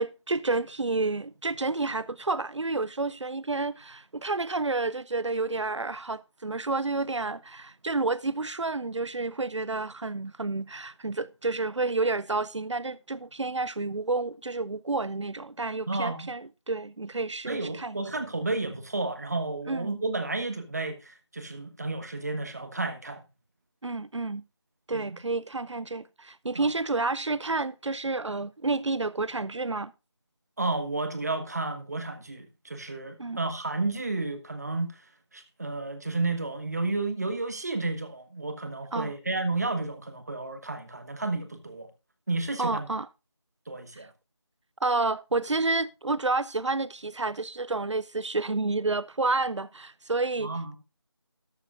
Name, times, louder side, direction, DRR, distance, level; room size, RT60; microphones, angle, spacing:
voice 1, 0.0-18.0 19.7-19.9 23.8-24.4 24.9-29.9 33.2-33.4 38.9-39.1 42.6-43.1 43.9-44.1 44.8-50.5, right 3 dB, 90° right, 0.5 m, -30 dB
voice 2, 15.9-16.3 17.5-23.2 24.9-25.2 26.5-26.7 30.6-35.0 35.3-41.9 42.3-42.9 43.7-44.1 50.4-50.8, right 2 dB, 35° right, 1.5 m, -32 dB
12.5 x 12.0 x 2.5 m
figure-of-eight pair, 170°, 15 cm